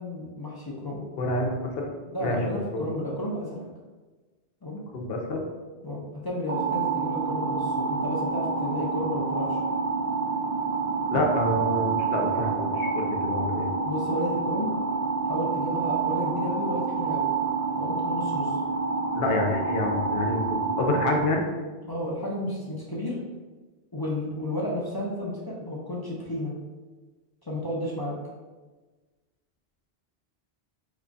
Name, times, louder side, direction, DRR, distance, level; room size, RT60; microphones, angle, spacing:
voice 1, 0.0-1.0 2.1-3.6 4.6-4.8 5.8-9.6 13.8-14.7 15.3-17.3 17.8-18.6 21.9-23.2 23.9-26.5 27.4-28.2, left 1 dB, 35° left, -4 dB, 0.4 m, -32 dB
voice 2, 1.2-1.9 2.2-2.8 4.9-5.4 11.1-13.7 19.1-21.4, left 2 dB, 70° left, 1 dB, 0.8 m, -28 dB
sound 1, 6.5-21.2, right 4 dB, 45° right, 0.6 m, -28 dB
3.0 x 2.3 x 3.8 m, 1.3 s
omnidirectional pair, 1.1 m